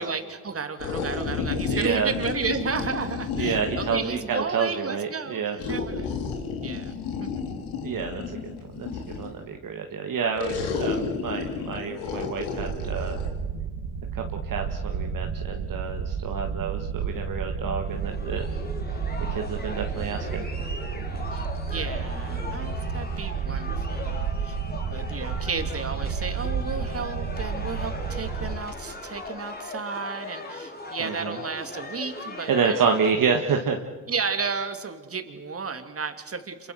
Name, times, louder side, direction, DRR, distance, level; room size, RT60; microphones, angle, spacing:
voice 1, 0.0-6.1 6.6-7.5 11.7-12.2 21.3-24.6 24.9-33.0 34.1-36.7, right 5 dB, 35° right, 7 dB, 2.9 m, -33 dB
sound 1, 0.8-4.2 5.6-9.4 10.4-13.3, left 5 dB, 85° left, 3.2 m, -31 dB
voice 2, 1.7-2.1 3.4-5.6 7.8-8.4 8.7-8.9 9.2-13.2 14.1-18.5 19.3-20.4 31.0-31.4 32.5-33.9, right 6 dB, 55° right, 3 dB, 1.9 m, -28 dB
sound 2, 12.6-28.6, right 6 dB, 70° right, 2.2 m, -31 dB
sound 3, 17.9-33.1, left 3 dB, 25° left, 4.5 m, -39 dB
27.0 x 24.0 x 6.5 m, 1.4 s
supercardioid pair, 70°, 39 cm